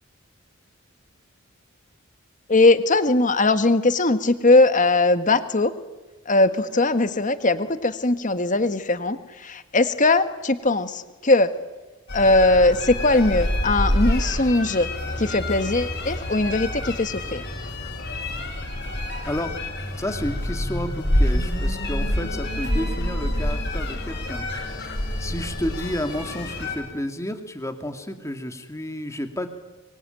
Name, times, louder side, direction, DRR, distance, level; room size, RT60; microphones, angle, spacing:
voice 1, 2.5-5.7 6.2-11.5 12.1-14.9 15.2-17.4, left 2 dB, 40° left, 11 dB, 1.5 m, -20 dB
sound 1, 12.1-26.8, left 1 dB, 60° left, 7.3 m, -27 dB
voice 2, 19.3-19.6 20.0-24.5 25.2-29.5, left 1 dB, 15° left, 7 dB, 2.2 m, -31 dB
24.0 x 24.0 x 9.1 m, 1.1 s
head